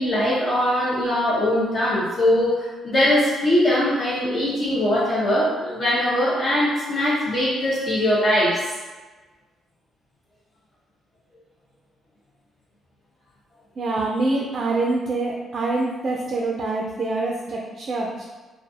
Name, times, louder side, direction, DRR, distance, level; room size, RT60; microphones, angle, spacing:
voice 1, 0.0-8.6, left 1 dB, 40° left, -9 dB, 0.7 m, -21 dB
voice 2, 13.8-18.3, right 2 dB, 45° right, -2 dB, 0.4 m, -25 dB
2.4 x 2.3 x 2.5 m, 1.3 s
cardioid pair, 90°, 0 cm